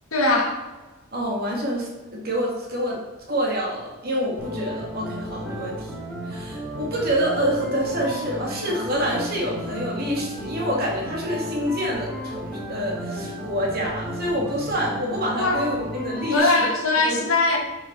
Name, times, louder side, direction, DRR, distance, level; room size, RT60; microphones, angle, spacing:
voice 1, 0.1-0.6 15.4-15.6 16.3-17.6, left 2 dB, 85° left, 1 dB, 1.8 m, -20 dB
voice 2, 1.1-3.0 3.3-5.9 6.3-16.7 17.0-17.2, equal, 45° right, -2 dB, 2.3 m, -27 dB
sound 1, 4.4-16.4, equal, 5° right, 2.2 m, -34 dB
8.7 x 5.6 x 4.1 m, 1.2 s
head